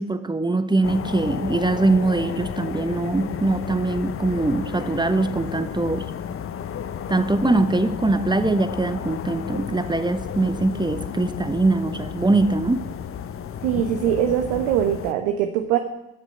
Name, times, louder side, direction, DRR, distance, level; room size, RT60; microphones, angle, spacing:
voice 1, 0.0-6.1 7.1-12.9, right 2 dB, 10° right, 10 dB, 0.9 m, -22 dB
sound 1, 0.8-15.1, left 8 dB, 30° left, 0.8 m, -32 dB
voice 2, 13.6-15.8, right 10 dB, 65° right, 6 dB, 1.1 m, -22 dB
14.0 x 6.1 x 8.2 m, 0.94 s
figure-of-eight pair, 60°, 43 cm